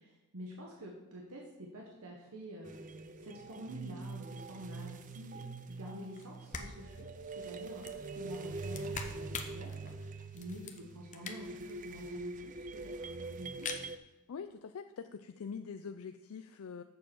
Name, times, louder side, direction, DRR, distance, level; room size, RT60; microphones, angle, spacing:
voice 1, 0.0-7.1 7.4-13.7, equal, 80° right, -1 dB, 1.4 m, -48 dB
sound 1, 2.6-14.0, right 3 dB, 35° right, 0.4 m, -44 dB
sound 2, 6.2-6.3 6.5-11.7 12.1-12.2 12.3-12.4 12.6-13.1 13.4-13.8, left 5 dB, 35° left, 0.8 m, -45 dB
voice 2, 14.3-16.8, left 6 dB, 75° left, 8 dB, 0.4 m, -44 dB
7.4 x 6.7 x 6.1 m, 1.1 s
head